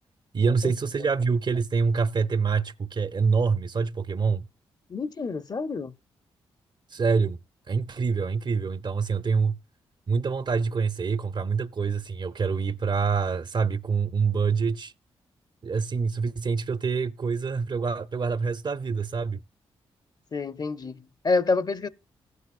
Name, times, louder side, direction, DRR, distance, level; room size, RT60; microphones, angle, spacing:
voice 1, 0.3-4.5 6.9-7.4 7.7-9.6 10.1-14.9 15.6-19.4, right 5 dB, 45° right, 0.6 m, -26 dB
voice 2, 4.9-5.9 20.3-21.9, left 3 dB, 40° left, 0.6 m, -28 dB
15.5 x 8.2 x 2.4 m
supercardioid pair, 50°, 11 cm